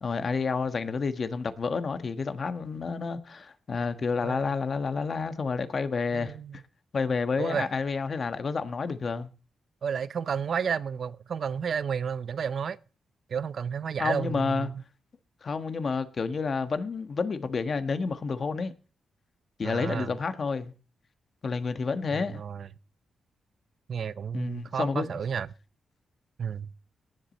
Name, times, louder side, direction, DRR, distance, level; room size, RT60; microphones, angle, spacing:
voice 1, 0.0-6.3 6.9-9.3 14.0-14.7 15.4-18.7 19.6-20.7 21.4-22.4 24.3-25.1, left 4 dB, 50° left, 1.3 m, -30 dB
voice 2, 4.2-4.5 6.1-6.6 7.4-7.7 9.8-12.8 13.3-14.8 19.6-20.1 22.1-22.7 23.9-25.5 26.4-26.7, right 7 dB, 60° right, 0.6 m, -31 dB
18.0 x 7.5 x 4.1 m
cardioid pair, 75°, 0 cm